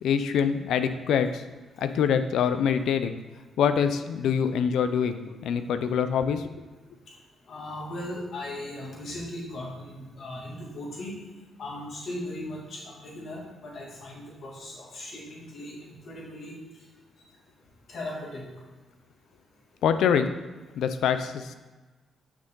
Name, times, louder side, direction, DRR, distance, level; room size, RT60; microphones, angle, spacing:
voice 1, 0.0-1.4 1.8-3.1 3.6-6.5 19.8-20.3 20.8-21.5, left 7 dB, 80° left, 10 dB, 0.5 m, -25 dB
voice 2, 7.5-11.2 11.6-16.6 17.9-18.5, left 1 dB, 65° left, -3 dB, 2.3 m, -38 dB
6.5 x 6.0 x 3.8 m, 1.2 s
cardioid pair, 65°, 0 cm